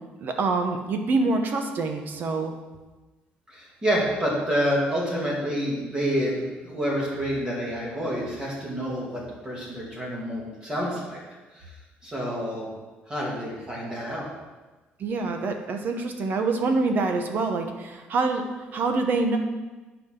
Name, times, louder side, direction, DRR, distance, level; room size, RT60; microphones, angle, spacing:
voice 1, 0.2-2.5 15.0-19.4, right 3 dB, 55° right, 5 dB, 1.0 m, -26 dB
voice 2, 3.5-11.2 11.5-11.7 12.0-12.7 13.1-14.3, equal, 20° right, -4 dB, 2.5 m, -28 dB
10.5 x 4.9 x 3.8 m, 1.2 s
cardioid pair, 100°, 4 cm